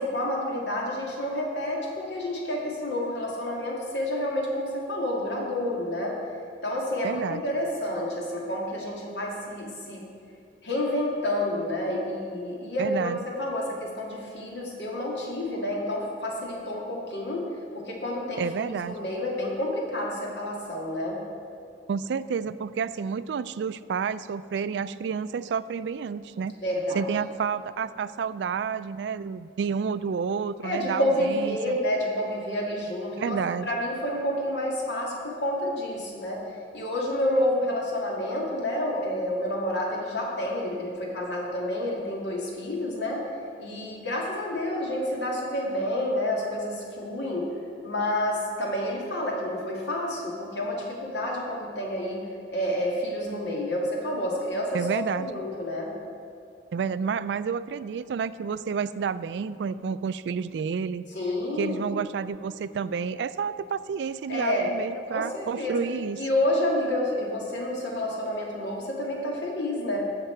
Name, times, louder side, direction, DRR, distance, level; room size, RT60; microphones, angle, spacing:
voice 1, 0.0-6.2 6.6-10.0 10.6-17.5 17.7-21.2 26.6-27.1 30.6-33.4 33.7-36.4 36.7-43.2 43.6-47.5 47.8-52.2 52.5-55.9 61.1-61.8 64.3-64.7 65.1-65.8 66.2-70.0, left 1 dB, 85° left, -2 dB, 2.1 m, -29 dB
voice 2, 7.0-7.4 12.8-13.2 18.4-19.0 21.9-26.6 26.9-31.8 33.2-33.7 54.7-55.3 56.7-61.0 61.6-66.2, right 6 dB, 80° right, 15 dB, 0.3 m, -30 dB
15.5 x 5.8 x 4.5 m, 2.4 s
head